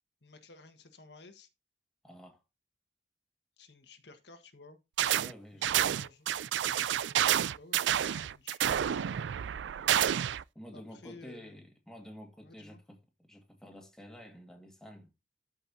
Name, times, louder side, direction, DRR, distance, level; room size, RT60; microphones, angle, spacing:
voice 1, 0.2-1.5 3.6-4.8 5.5-6.2 6.9-9.1 10.7-11.6 12.4-12.8, left 3 dB, 80° left, 1.5 m, -54 dB
voice 2, 2.0-2.4 5.2-6.0 10.6-13.0 13.3-15.1, equal, 5° left, 1.9 m, -50 dB
sound 1, 5.0-5.3 5.6-10.4, right 10 dB, 90° right, 0.4 m, -29 dB
13.0 x 5.5 x 2.8 m
head